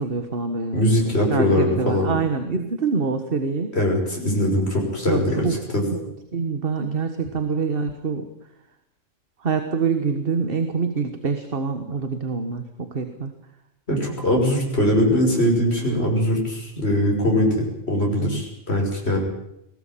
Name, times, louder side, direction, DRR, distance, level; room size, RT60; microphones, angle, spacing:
voice 1, 0.0-3.8 5.1-5.6 5.9-8.3 9.4-13.3 15.0-15.3 15.8-16.0 18.2-18.4, right 5 dB, 50° right, 8 dB, 1.8 m, -26 dB
voice 2, 0.7-2.1 3.7-5.5 5.7-5.8 13.9-19.2, left 1 dB, 55° left, 0 dB, 6.4 m, -21 dB
21.5 x 17.5 x 9.1 m, 0.80 s
omnidirectional pair, 1.3 m